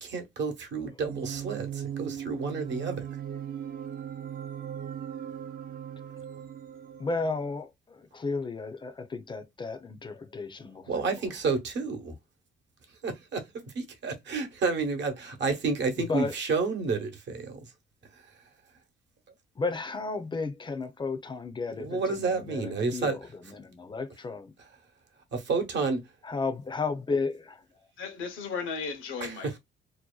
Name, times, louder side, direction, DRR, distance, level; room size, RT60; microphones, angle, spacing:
voice 1, 0.0-3.1 10.9-12.2 12.9-17.7 18.1-18.4 21.7-23.2 25.3-26.0 29.2-29.5, right 4 dB, 65° right, 0.9 m, -30 dB
sound 1, 1.0-7.6, right 9 dB, 50° right, 0.5 m, -38 dB
voice 2, 7.0-11.1 16.1-16.3 19.6-24.5 26.2-27.6, left 4 dB, 25° left, 0.5 m, -33 dB
voice 3, 28.0-29.6, left 5 dB, 80° left, 0.8 m, -35 dB
2.7 x 2.1 x 2.2 m
cardioid pair, 90°, 20 cm